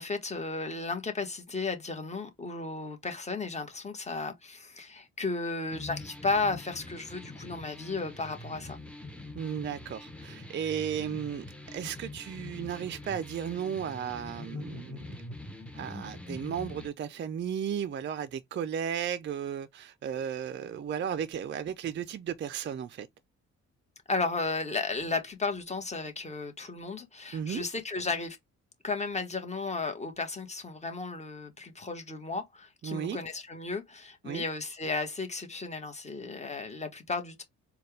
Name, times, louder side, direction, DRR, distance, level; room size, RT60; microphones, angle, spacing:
voice 1, 0.0-8.8 24.1-28.4 28.8-37.4, left 3 dB, 20° left, 1.3 m, -34 dB
sound 1, 5.7-16.9, left 2 dB, 5° left, 0.8 m, -44 dB
voice 2, 9.3-15.1 15.7-23.1 27.3-27.6 32.8-33.2 34.3-34.4, right 8 dB, 40° right, 0.4 m, -34 dB
4.2 x 2.3 x 3.3 m
cardioid pair, 90°, 30 cm